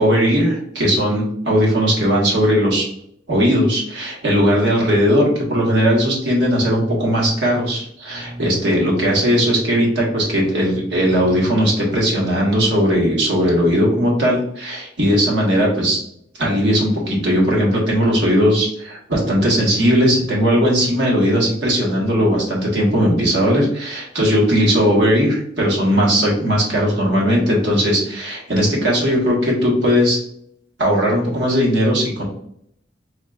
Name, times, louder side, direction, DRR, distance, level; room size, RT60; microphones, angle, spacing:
voice 1, 0.0-2.9 3.3-16.0 16.4-30.2 30.8-32.2, equal, 80° right, -3 dB, 1.5 m, -18 dB
4.3 x 3.2 x 2.4 m, 0.70 s
head